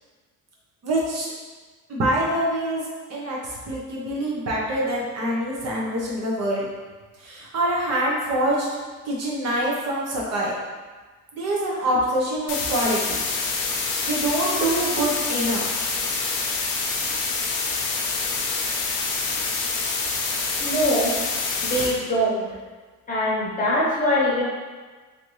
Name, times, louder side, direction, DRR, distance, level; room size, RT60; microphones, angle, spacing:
voice 1, 0.8-1.3 1.9-3.4 3.7-6.7 7.2-8.7 9.0-10.5 11.3-13.2 14.1-15.7, right 1 dB, 55° right, -4 dB, 0.8 m, -25 dB
sound 1, 12.5-21.9, left 4 dB, 80° left, 0.7 m, -26 dB
voice 2, 20.6-21.2 21.6-22.5 23.1-24.4, equal, 25° left, -6 dB, 0.8 m, -22 dB
3.4 x 2.7 x 3.1 m, 1.4 s
cardioid pair, 160°, 32 cm